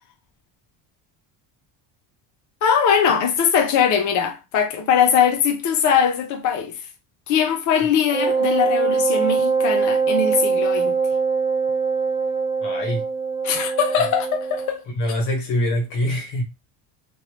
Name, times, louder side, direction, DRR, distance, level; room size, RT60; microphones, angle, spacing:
voice 1, 2.6-6.7 7.3-10.9 13.4-14.8, left 7 dB, 40° left, 0.6 m, -20 dB
Wind instrument woodwind instrument, 8.1-14.8, right 5 dB, 10° right, 0.6 m, -22 dB
voice 2, 12.6-13.1 14.9-16.4, left 1 dB, 85° left, 1.5 m, -24 dB
2.9 x 2.1 x 3.1 m
cardioid pair, 170°, 47 cm